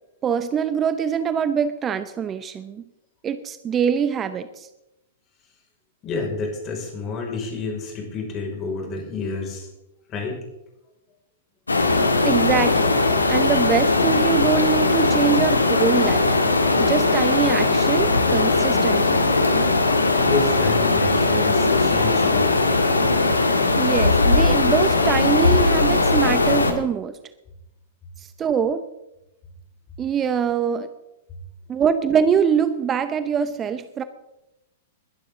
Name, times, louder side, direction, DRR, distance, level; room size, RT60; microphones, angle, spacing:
voice 1, 0.2-2.8 3.2-4.7 12.2-13.0 13.3-16.3 16.8-19.2 23.8-27.2 28.2-28.8 30.0-30.9 31.7-34.0, right 7 dB, 25° right, 12 dB, 0.8 m, -23 dB
voice 2, 6.0-9.7 10.1-10.4 20.1-22.5, left 4 dB, 30° left, 0 dB, 5.6 m, -29 dB
sound 1, 11.7-26.7, left 3 dB, 90° left, 2.0 m, -19 dB
21.0 x 12.0 x 3.8 m, 0.91 s
figure-of-eight pair, 105°, 0 cm